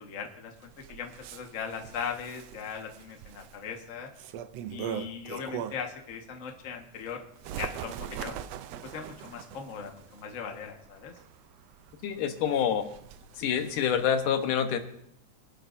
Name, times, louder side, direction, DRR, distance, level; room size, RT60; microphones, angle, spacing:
voice 1, 0.0-4.1 4.7-7.2 7.5-8.4 8.8-11.1, left 6 dB, 40° left, 2 dB, 1.1 m, -39 dB
Bird, 0.6-6.0 6.4-14.1, right 10 dB, 85° right, 1.4 m, -42 dB
voice 2, 12.0-12.9 13.4-14.8, left 8 dB, 85° left, 6 dB, 2.7 m, -27 dB
23.5 x 11.5 x 2.7 m, 0.72 s
omnidirectional pair, 3.6 m